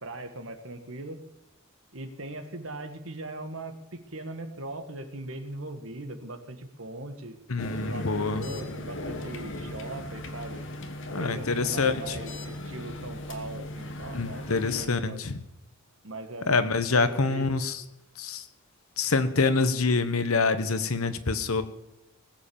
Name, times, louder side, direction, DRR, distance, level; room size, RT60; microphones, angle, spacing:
voice 1, 0.0-1.2 1.9-7.4 7.8-10.7 11.2-15.2 16.0-17.5, right 2 dB, 65° right, 8 dB, 1.7 m, -40 dB
voice 2, 7.5-8.4 11.1-12.2 14.1-15.4 16.5-17.8 18.2-18.4 19.0-21.6, left 4 dB, 80° left, 11 dB, 1.1 m, -26 dB
sound 1, 7.6-14.9, left 1 dB, 60° left, 1.5 m, -38 dB
19.5 x 7.7 x 7.0 m, 0.89 s
head